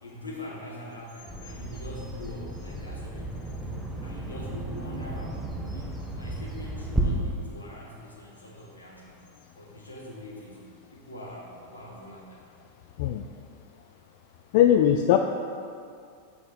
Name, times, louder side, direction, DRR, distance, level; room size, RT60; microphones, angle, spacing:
voice 1, 0.0-3.4 4.0-9.2 9.6-12.5, left 1 dB, 80° left, -3 dB, 1.4 m, -43 dB
Bird vocalization bird call bird song, 1.3-7.0, right 1 dB, 5° right, 1.1 m, -34 dB
voice 2, 14.5-15.2, left 10 dB, 50° left, 5 dB, 0.3 m, -19 dB
7.7 x 5.8 x 4.0 m, 2.3 s
figure-of-eight pair, 90°, 0 cm